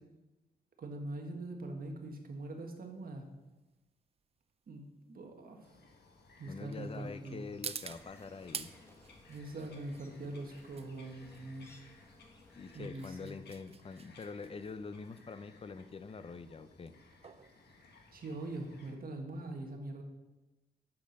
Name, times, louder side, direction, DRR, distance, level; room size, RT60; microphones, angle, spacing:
voice 1, 0.8-3.3 4.7-5.7 6.4-7.4 9.3-11.8 12.7-13.3 18.1-20.0, right 2 dB, 60° right, 3 dB, 1.4 m, -43 dB
sound 1, 2.0-18.7, right 6 dB, 35° right, 0.4 m, -50 dB
Bird vocalization bird call bird song, 5.6-18.9, left 3 dB, 85° left, 1.5 m, -61 dB
voice 2, 6.5-8.8 12.6-16.9, left 4 dB, 35° left, 12 dB, 0.5 m, -45 dB
sound 2, 7.9-12.9, left 1 dB, 15° left, 1.1 m, -61 dB
8.5 x 6.0 x 6.5 m, 1.1 s
wide cardioid pair, 130°, 17 cm